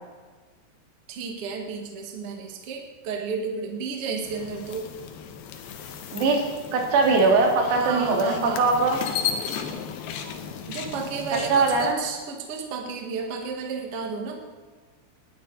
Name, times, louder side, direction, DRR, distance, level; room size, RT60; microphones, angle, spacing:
voice 1, 1.1-4.9 7.6-8.6 10.7-14.4, right 5 dB, 50° right, 2 dB, 1.8 m, -32 dB
sound 1, 4.2-11.9, left 7 dB, 70° left, 2.8 m, -35 dB
voice 2, 6.1-6.5 6.7-9.0 11.5-12.0, right 3 dB, 75° right, 1 dB, 4.2 m, -21 dB
19.5 x 11.0 x 4.0 m, 1.4 s
omnidirectional pair, 5.1 m